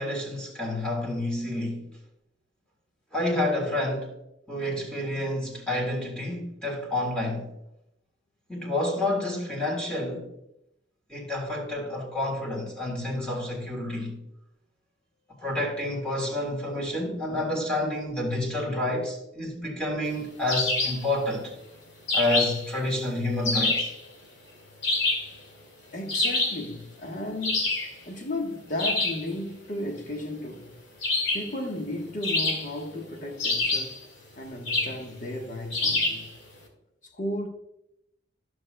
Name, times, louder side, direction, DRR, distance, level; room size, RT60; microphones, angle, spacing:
voice 1, 0.0-1.9 3.1-4.1 4.5-7.5 8.5-10.3 11.1-14.2 15.4-21.5 22.1-23.9, left 1 dB, 5° left, 1.7 m, -29 dB
sound 1, 20.5-21.1 22.1-22.7 23.5-24.0 24.8-25.4 26.1-26.6 27.4-27.9 28.8-29.2 31.0-31.5 32.2-32.9 33.4-34.0 34.7-35.0 35.7-36.3, left 2 dB, 75° left, 2.0 m, -26 dB
voice 2, 25.9-27.7 28.1-30.7 31.3-34.0 34.4-36.3 37.1-37.5, left 1 dB, 45° left, 1.2 m, -34 dB
13.5 x 6.2 x 2.2 m
head